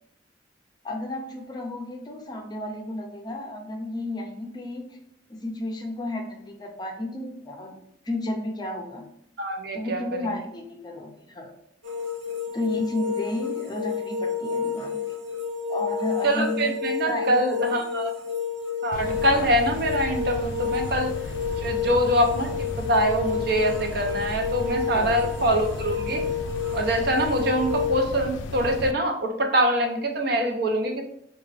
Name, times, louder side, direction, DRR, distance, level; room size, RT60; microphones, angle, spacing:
voice 1, 0.8-4.8 5.3-7.8 8.0-9.0 9.7-11.5 12.5-15.1 15.7-16.8 17.1-17.8 18.9-19.5 24.9-25.3, left 1 dB, 20° left, 2 dB, 0.5 m, -33 dB
voice 2, 9.4-10.3 16.2-18.1 18.8-21.1 21.6-26.3 26.7-31.0, right 1 dB, 55° right, 3 dB, 0.6 m, -24 dB
sound 1, 11.8-27.9, left 6 dB, 90° right, 0.7 m, -30 dB
sound 2, 18.9-28.9, left 3 dB, 85° left, 0.4 m, -35 dB
4.7 x 2.3 x 3.3 m, 0.74 s
head